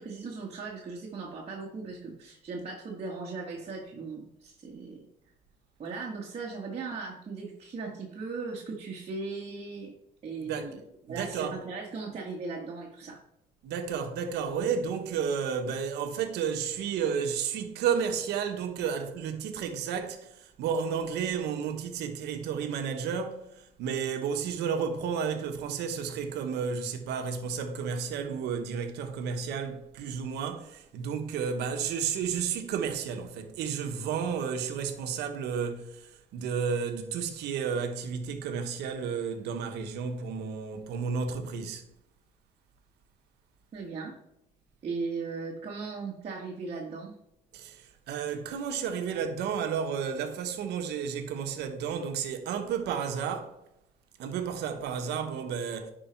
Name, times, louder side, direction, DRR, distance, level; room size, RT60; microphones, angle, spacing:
voice 1, 0.0-5.0 5.8-9.9 10.2-10.8 11.0-13.2 43.7-44.1 44.8-47.1, right 4 dB, 40° right, 1.6 m, -38 dB
voice 2, 11.1-11.6 13.6-41.8 47.5-53.6 54.2-55.9, right 6 dB, 80° right, 1.2 m, -32 dB
10.5 x 5.0 x 4.5 m
cardioid pair, 110°, 17 cm